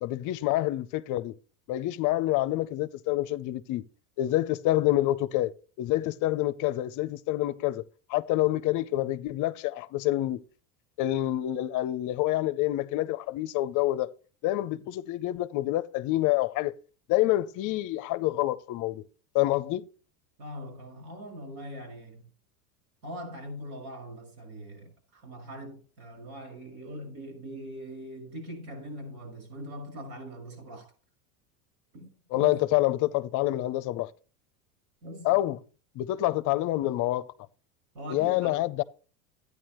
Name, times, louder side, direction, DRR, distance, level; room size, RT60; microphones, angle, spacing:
voice 1, 0.0-1.3 1.7-3.8 4.2-5.5 5.8-7.8 8.1-10.4 11.0-14.1 14.4-16.7 17.1-19.0 19.3-19.9 32.3-34.1 35.2-35.6 36.0-37.3 38.1-38.8, left 16 dB, 45° left, 0.5 m, -27 dB
voice 2, 20.4-22.3 23.0-30.9 31.9-32.6 35.0-35.4 37.9-38.6, equal, 75° right, 5.6 m, -42 dB
12.5 x 9.5 x 3.0 m
supercardioid pair, 105°, 44 cm